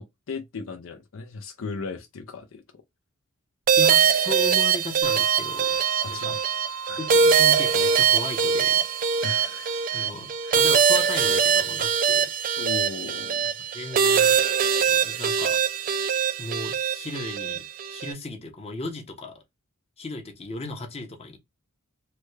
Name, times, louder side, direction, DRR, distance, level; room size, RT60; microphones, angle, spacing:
voice 1, 0.0-2.6 6.0-6.4 6.9-7.0 9.2-10.1 10.4-10.6 12.6-13.5, left 4 dB, 65° left, 0.5 m, -37 dB
sound 1, 3.7-18.1, right 7 dB, 40° right, 0.3 m, -22 dB
voice 2, 3.8-6.3 7.0-8.8 9.9-12.3 13.7-14.4 14.9-15.6 16.4-19.4 20.0-21.4, left 2 dB, 30° left, 0.8 m, -36 dB
sound 2, 5.0-11.5, right 4 dB, 90° right, 0.8 m, -39 dB
3.3 x 2.2 x 3.1 m
head